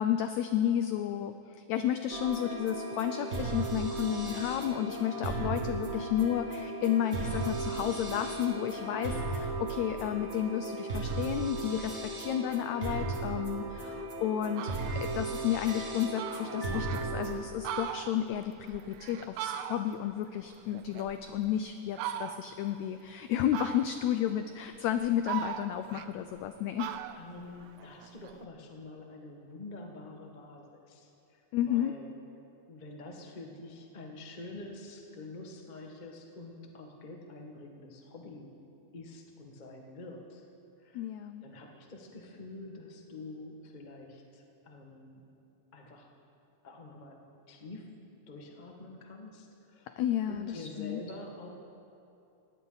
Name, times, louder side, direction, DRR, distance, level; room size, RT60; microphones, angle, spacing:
voice 1, 0.0-27.0 31.5-32.0 40.9-41.4 49.9-51.0, left 11 dB, 85° left, 9 dB, 1.6 m, -32 dB
sound 1, 2.1-17.3, right 2 dB, 30° right, 1.4 m, -36 dB
Fowl, 13.9-14.0 14.4-15.0 15.5-15.6 15.8-15.9 16.2-17.1 17.5-20.1 20.5-21.5 21.9-22.6 23.5-24.2 24.7-26.5 26.8-28.4, right 10 dB, 85° right, 1.6 m, -39 dB
voice 2, 27.1-32.1 32.7-38.5 38.9-40.5 40.8-41.0 41.4-45.2 45.7-46.1 46.6-47.2 47.5-47.9 48.3-51.5, left 2 dB, 40° left, 1 dB, 0.6 m, -47 dB
19.5 x 17.5 x 4.0 m, 2.7 s
omnidirectional pair, 3.8 m